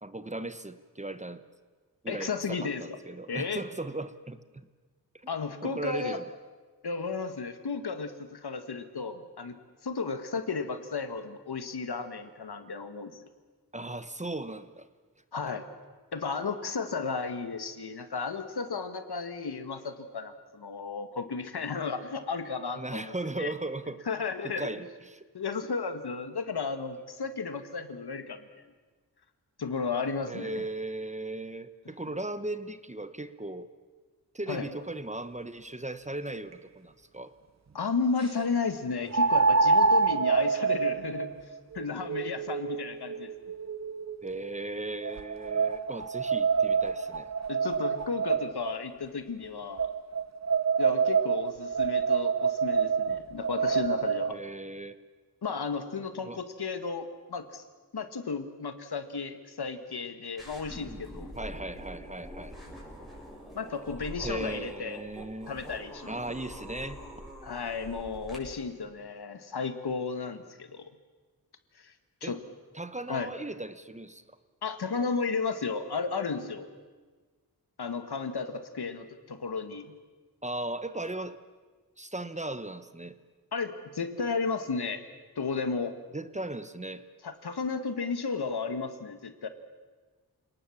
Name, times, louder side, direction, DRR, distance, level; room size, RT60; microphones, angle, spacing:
voice 1, 0.0-1.4 2.0-4.7 5.6-6.2 13.7-14.9 22.8-24.0 24.4-25.3 30.2-33.7 34.3-37.3 44.2-47.3 54.3-55.0 56.2-56.4 61.4-62.5 64.2-65.5 66.1-67.0 72.2-72.4 72.7-74.2 80.4-81.4 82.0-83.2 86.1-87.0, right 2 dB, 20° right, 12 dB, 1.0 m, -37 dB
voice 2, 2.1-3.0 3.3-3.6 5.3-6.2 6.8-9.6 9.8-13.2 15.3-15.6 16.1-23.1 23.4-23.5 24.1-24.7 25.3-28.6 29.6-30.6 34.5-34.7 37.7-41.3 41.7-43.3 47.5-49.9 50.8-54.4 55.4-57.6 57.9-61.3 63.6-65.0 65.5-66.2 67.4-70.9 71.8-71.9 72.2-72.4 73.1-73.3 74.6-76.7 77.8-79.9 83.5-85.1 85.4-86.0 87.2-89.5, left 4 dB, 75° left, 9 dB, 1.8 m, -33 dB
sound 1, 36.5-36.6 39.1-44.3 45.0-48.7 49.8-54.3, right 5 dB, 45° right, 0.9 m, -27 dB
sound 2, 60.4-68.4, equal, ahead, 7.2 m, -44 dB
28.5 x 19.0 x 7.3 m, 1.4 s
wide cardioid pair, 95°, 39 cm